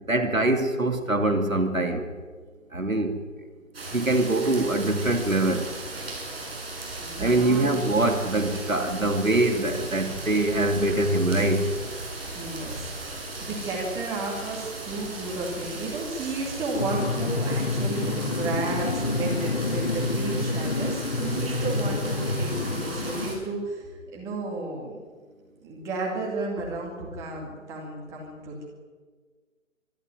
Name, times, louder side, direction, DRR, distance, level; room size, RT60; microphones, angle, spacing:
voice 1, 0.1-2.0 2.7-3.1 3.9-5.7 7.2-11.7, right 2 dB, 80° right, 6 dB, 3.0 m, -23 dB
sound 1, 3.7-23.4, right 2 dB, 45° right, 6.7 m, -37 dB
voice 2, 7.0-7.9 12.3-25.0 25.6-28.7, right 2 dB, 5° right, -2 dB, 2.3 m, -33 dB
sound 2, 16.8-23.3, left 2 dB, 35° left, 2.0 m, -28 dB
24.0 x 12.5 x 9.6 m, 1.5 s
figure-of-eight pair, 150°, 40 cm